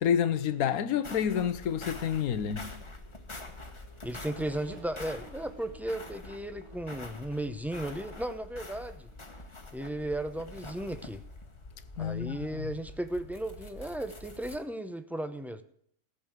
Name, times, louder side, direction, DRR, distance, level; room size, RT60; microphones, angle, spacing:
voice 1, 0.0-2.8 12.0-12.7, left 8 dB, 80° left, 1.3 m, -29 dB
sound 1, 1.0-14.6, left 2 dB, 20° left, 1.4 m, -46 dB
Accelerating revving vroom, 2.9-9.6, right 5 dB, 80° right, 2.8 m, -56 dB
voice 2, 4.0-9.1 9.7-11.2 12.0-15.6, right 1 dB, ahead, 0.4 m, -35 dB
15.5 x 7.0 x 9.1 m
omnidirectional pair, 1.5 m